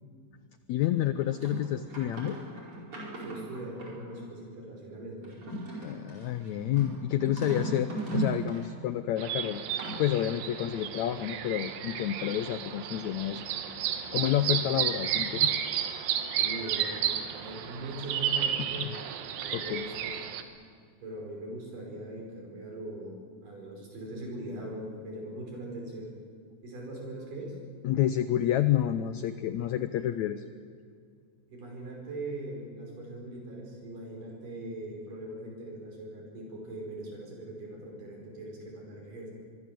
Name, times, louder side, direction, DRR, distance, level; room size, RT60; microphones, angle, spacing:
voice 1, 0.7-2.4 5.8-9.6 10.0-13.4 14.1-15.6 18.8-18.9 19.5-19.9 27.8-30.4, left 12 dB, 80° left, 11 dB, 1.6 m, -29 dB
sound 1, 1.2-4.2 5.2-8.7 9.3-10.2, right 2 dB, 35° right, 5.6 m, -37 dB
voice 2, 3.2-5.4 14.6-14.9 16.4-17.0 17.4-18.9 19.4-20.1 21.0-23.2 23.4-26.1 26.6-27.6 31.5-39.3, right 1 dB, 65° right, 0 dB, 7.1 m, -41 dB
sound 2, 9.2-20.4, right 9 dB, 80° right, 3.1 m, -32 dB
24.5 x 22.5 x 7.6 m, 2.2 s
omnidirectional pair, 4.1 m